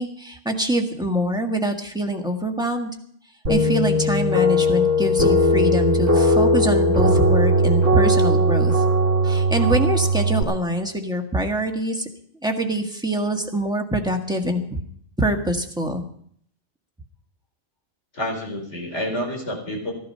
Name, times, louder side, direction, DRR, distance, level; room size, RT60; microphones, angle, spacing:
voice 1, 0.0-2.9 3.5-8.8 9.2-12.1 12.4-14.8 15.2-16.0, right 1 dB, 5° right, 2 dB, 1.7 m, -24 dB
sound 1, 3.5-10.4, equal, 80° right, 2.0 m, -18 dB
voice 2, 18.1-19.9, equal, 70° left, 2 dB, 4.8 m, -28 dB
15.0 x 12.0 x 5.6 m, 0.63 s
omnidirectional pair, 1.2 m